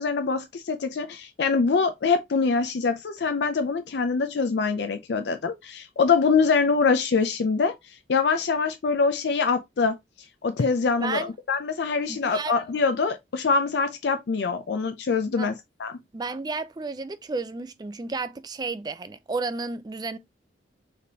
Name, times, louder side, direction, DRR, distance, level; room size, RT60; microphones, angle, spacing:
voice 1, 0.0-10.0 10.4-15.5 15.8-15.9, left 4 dB, 65° left, 0.4 m, -24 dB
voice 2, 11.0-11.3 12.1-12.5 15.4-15.6 16.1-20.2, right 3 dB, 20° right, 0.3 m, -32 dB
4.2 x 3.3 x 2.7 m
head